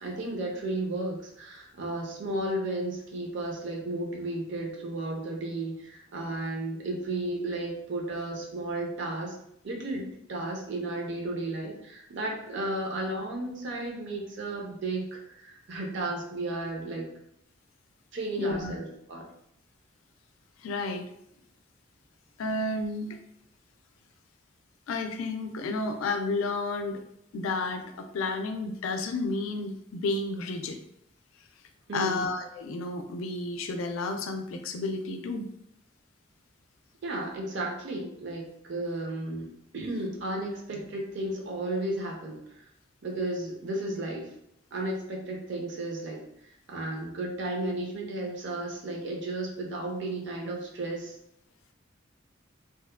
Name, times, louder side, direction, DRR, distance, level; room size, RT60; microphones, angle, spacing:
voice 1, 0.0-9.3 9.6-17.1 18.1-19.2 31.9-32.2 37.0-39.5 39.7-42.4 43.0-44.3 44.7-46.2 46.7-51.1, right 2 dB, 60° right, -1 dB, 0.6 m, -33 dB
voice 2, 18.4-18.8 20.6-21.1 22.4-23.2 24.9-27.0 27.3-30.8 31.9-35.5, left 3 dB, 85° left, 6 dB, 0.4 m, -31 dB
2.7 x 2.1 x 2.3 m, 0.76 s
head